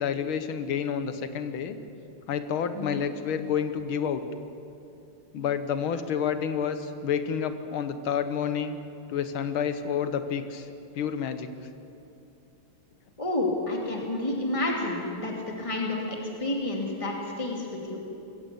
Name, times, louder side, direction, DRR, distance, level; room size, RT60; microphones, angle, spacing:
voice 1, 0.0-1.8 2.3-4.2 5.3-8.8 9.1-10.7 10.9-11.5, left 7 dB, 75° left, 10 dB, 2.0 m, -29 dB
voice 2, 2.7-3.1 13.2-18.0, left 2 dB, 15° left, 0 dB, 2.8 m, -30 dB
22.0 x 16.0 x 8.5 m, 2.8 s
omnidirectional pair, 2.3 m